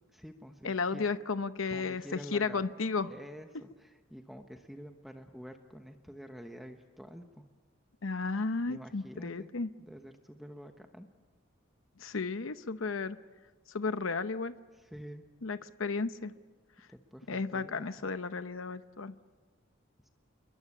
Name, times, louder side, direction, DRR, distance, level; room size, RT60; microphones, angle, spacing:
voice 1, 0.1-1.1 1.7-2.6 3.1-7.4 8.7-9.5 9.8-11.1 14.7-15.2 16.9-18.0 20.0-20.1, equal, ahead, 5 dB, 1.1 m, -48 dB
voice 2, 0.6-3.1 8.0-9.7 12.0-13.2 13.7-14.5 15.4-16.3 17.3-19.1, left 4 dB, 75° left, 11 dB, 0.8 m, -33 dB
28.5 x 22.0 x 8.6 m, 1.3 s
head